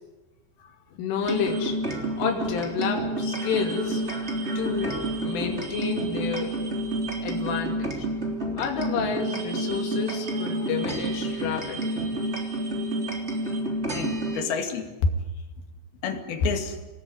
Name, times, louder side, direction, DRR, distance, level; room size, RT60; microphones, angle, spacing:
voice 1, 1.0-1.8 2.2-4.0 4.6-6.5 7.2-8.1 8.6-12.0, left 6 dB, 85° left, 2 dB, 5.3 m, -30 dB
sound 1, 1.2-14.4, right 1 dB, 15° right, 2.9 m, -29 dB
voice 2, 10.3-10.7 13.9-14.9 16.0-16.8, left 5 dB, 60° left, 6 dB, 3.9 m, -29 dB
27.5 x 20.0 x 9.8 m, 1.1 s
omnidirectional pair, 5.5 m